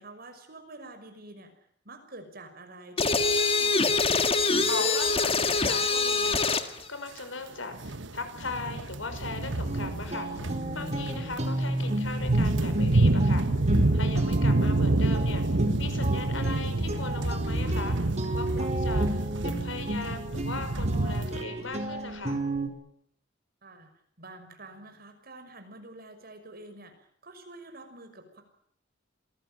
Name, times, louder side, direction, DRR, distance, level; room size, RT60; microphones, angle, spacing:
voice 1, 0.0-1.5 1.8-4.0 23.6-23.9 24.2-28.4, right 2 dB, 50° right, 7 dB, 5.9 m, -47 dB
sound 1, 3.0-6.7, left 4 dB, 30° left, 1.8 m, -24 dB
voice 2, 4.7-18.0 18.3-22.4, left 3 dB, 90° left, 8 dB, 5.9 m, -38 dB
sound 2, 7.2-7.3 7.7-21.4, right 2 dB, 70° right, 1.4 m, -27 dB
sound 3, 9.2-22.7, right 1 dB, 35° right, 4.6 m, -33 dB
27.0 x 19.5 x 9.0 m, 0.67 s
head